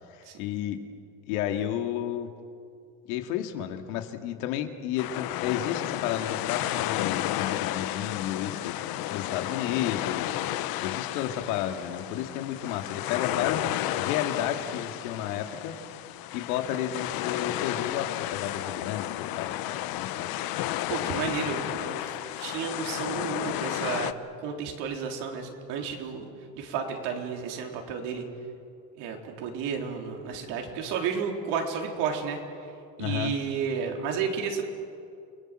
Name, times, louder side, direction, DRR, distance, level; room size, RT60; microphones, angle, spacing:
voice 1, 0.1-0.8 1.3-2.3 3.1-8.7 9.1-10.4 10.8-13.7 14.0-15.7 16.3-19.6 19.9-20.4 33.0-33.3, left 11 dB, 90° left, 5 dB, 2.3 m, -32 dB
sound 1, 5.0-24.1, left 14 dB, 55° left, 1.0 m, -32 dB
voice 2, 20.9-24.1 24.4-26.3 26.6-28.2 29.0-32.4 33.0-34.6, right 6 dB, 70° right, 2 dB, 4.1 m, -32 dB
29.0 x 20.0 x 7.7 m, 2.4 s
cardioid pair, 130°, 42 cm